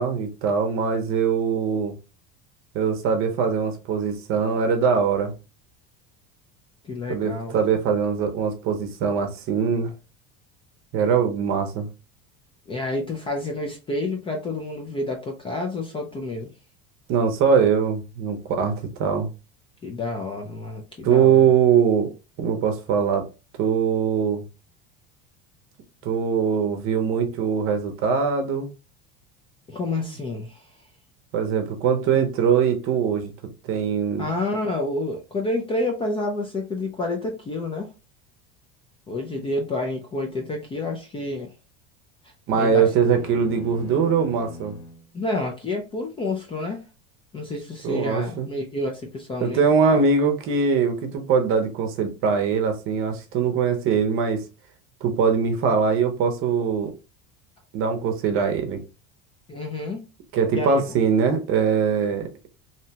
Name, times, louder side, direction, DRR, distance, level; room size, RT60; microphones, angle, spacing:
voice 1, 0.0-1.9 2.7-5.3 7.1-9.9 10.9-11.9 17.1-19.3 21.0-22.1 22.4-23.2 23.6-24.4 26.0-28.7 31.3-33.3 33.7-34.3 42.5-44.8 47.8-48.5 49.4-54.4 55.0-56.9 57.7-58.8 60.3-62.3, right 6 dB, 45° right, 0.7 m, -22 dB
voice 2, 6.8-7.5 12.7-16.5 19.8-21.4 29.7-30.6 34.2-37.9 39.1-41.5 42.5-42.9 45.1-46.8 47.3-49.6 49.9-50.0 59.5-60.0 60.5-60.8, left 2 dB, 20° left, 0.4 m, -29 dB
sound 1, 42.8-45.1, left 3 dB, 85° left, 1.0 m, -40 dB
2.8 x 2.1 x 2.8 m
supercardioid pair, 140°, 30 cm